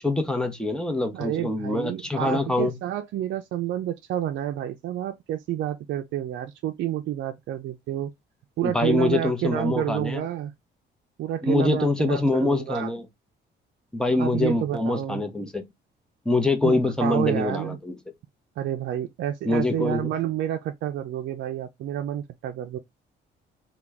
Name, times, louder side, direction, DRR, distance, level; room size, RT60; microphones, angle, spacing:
voice 1, 0.0-2.8 8.6-10.2 11.4-13.1 13.9-15.6 16.2-17.9 19.4-20.1, left 2 dB, 5° left, 0.8 m, -24 dB
voice 2, 1.1-8.1 8.6-10.5 11.2-12.9 14.1-15.2 16.6-17.8 18.6-22.8, right 11 dB, 70° right, 0.4 m, -29 dB
2.9 x 2.2 x 3.4 m
cardioid pair, 90°, 20 cm